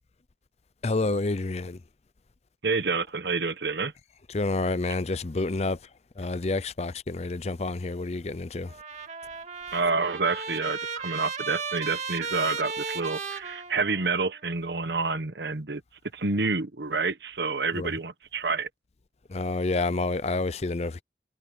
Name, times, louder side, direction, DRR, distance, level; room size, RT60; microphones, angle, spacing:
voice 1, 0.8-1.8 4.3-5.8 6.2-8.7 17.7-17.9 19.3-21.0, left 3 dB, 35° left, 0.6 m, -28 dB
voice 2, 2.6-3.9 9.7-15.8 16.1-18.7, right 4 dB, 75° right, 1.2 m, -28 dB
Trumpet, 8.7-14.3, right 5 dB, 40° right, 2.6 m, -35 dB
head